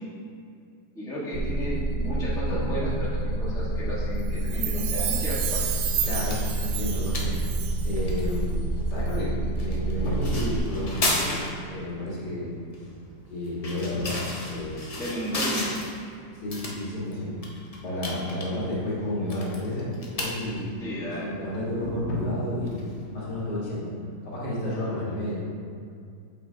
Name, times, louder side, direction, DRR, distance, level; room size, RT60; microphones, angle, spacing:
voice 1, 0.9-5.9 15.0-15.8 20.8-21.3, equal, ahead, -9 dB, 1.2 m, -33 dB
sound 1, 1.3-10.6, right 2 dB, 70° right, 1.2 m, -28 dB
Chime, 4.4-8.0 8.3-8.4, right 10 dB, 85° right, 1.3 m, -32 dB
sound 2, 5.1-23.4, left 2 dB, 45° left, 0.4 m, -36 dB
voice 2, 6.0-7.5 7.8-8.6 8.9-11.4 11.7-12.9 13.3-14.8 16.4-17.3 17.8-20.7 21.2-23.9 24.2-25.4, left 1 dB, 60° left, -8 dB, 2.3 m, -31 dB
8.2 x 5.7 x 2.8 m, 2.3 s
omnidirectional pair, 2.0 m